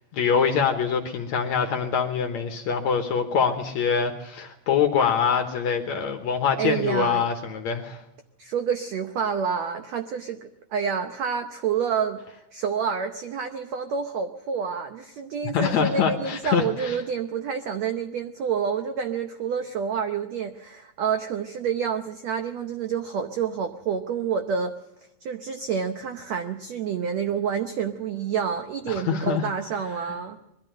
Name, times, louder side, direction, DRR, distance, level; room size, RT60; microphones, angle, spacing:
voice 1, 0.0-8.0 15.5-17.0 28.9-29.5, left 6 dB, 65° left, 6 dB, 1.9 m, -24 dB
voice 2, 6.6-7.3 8.4-12.2 12.5-24.7 25.2-30.4, right 7 dB, 85° right, 7 dB, 1.5 m, -28 dB
21.5 x 13.5 x 9.1 m, 0.84 s
omnidirectional pair, 4.4 m